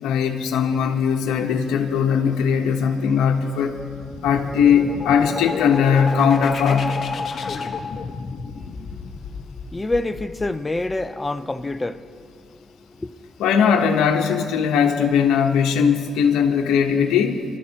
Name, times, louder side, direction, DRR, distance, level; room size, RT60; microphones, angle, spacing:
voice 1, 0.0-3.8 4.2-7.0 13.4-17.4, left 7 dB, 90° left, 1.0 m, -19 dB
sound 1, 3.7-11.3, left 4 dB, 50° left, 1.2 m, -31 dB
voice 2, 8.7-13.3, left 2 dB, 20° left, 0.6 m, -29 dB
27.5 x 12.5 x 2.9 m
cardioid pair, 90°, 0 cm